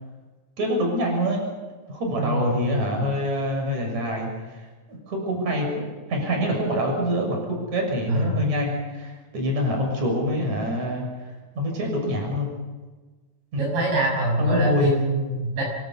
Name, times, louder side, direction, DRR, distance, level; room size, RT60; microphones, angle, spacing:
voice 1, 0.6-1.5 1.9-4.3 4.9-5.7 6.1-11.0 11.6-12.5 13.5-13.6 14.4-15.0, equal, 50° right, 1 dB, 7.8 m, -25 dB
voice 2, 2.2-2.8 8.1-8.4 13.6-15.6, right 1 dB, 85° right, -1 dB, 8.1 m, -24 dB
26.0 x 25.0 x 5.6 m, 1.3 s
omnidirectional pair, 4.1 m